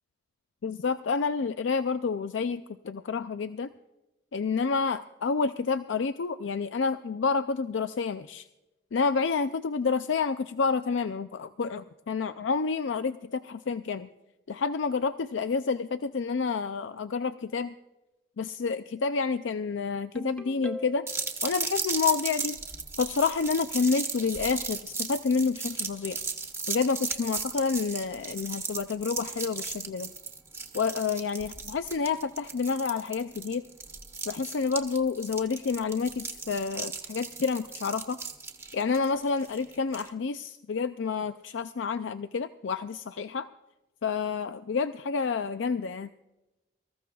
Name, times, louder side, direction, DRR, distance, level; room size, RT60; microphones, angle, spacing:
voice 1, 0.6-3.7 4.3-8.5 8.9-14.1 14.5-17.7 18.4-21.1 21.4-22.6 23.0-26.2 26.7-30.1 30.7-33.6 34.3-38.2 38.7-43.5 44.0-46.1, left 5 dB, 85° left, 11 dB, 0.4 m, -29 dB
Ringtone, 20.1-21.3, left 1 dB, 5° left, 0.9 m, -39 dB
sound 1, 21.1-40.1, right 4 dB, 15° right, 1.1 m, -36 dB
25.0 x 14.5 x 2.3 m, 0.99 s
head